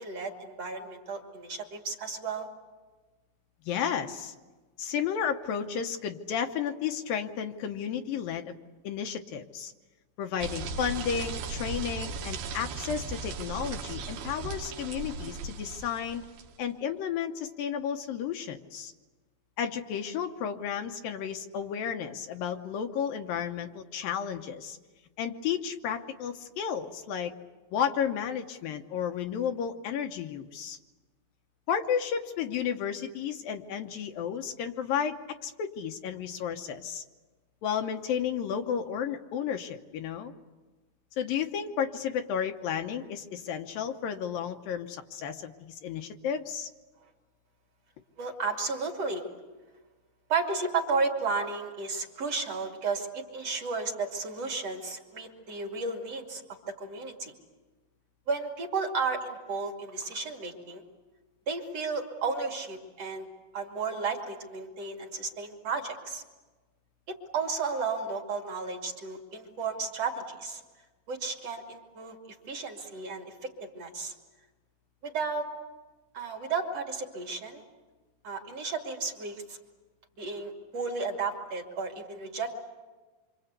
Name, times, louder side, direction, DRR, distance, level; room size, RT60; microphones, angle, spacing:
voice 1, 0.0-2.5 48.2-49.2 50.3-56.4 56.8-57.3 58.3-60.8 61.5-63.3 63.5-66.2 67.1-70.6 71.1-74.1 75.0-75.5 76.1-77.6 78.2-79.6 80.2-82.6, right 4 dB, 45° right, 2 dB, 3.2 m, -33 dB
voice 2, 3.7-4.3 4.8-8.6 8.8-9.7 10.2-16.2 16.6-18.9 19.6-24.8 25.2-27.3 27.7-30.8 31.7-37.0 37.6-40.3 41.2-46.7, left 8 dB, 75° left, 5 dB, 2.6 m, -32 dB
sound 1, 10.4-16.6, right 4 dB, 80° right, 3.2 m, -37 dB
26.0 x 26.0 x 8.2 m, 1.2 s
omnidirectional pair, 4.4 m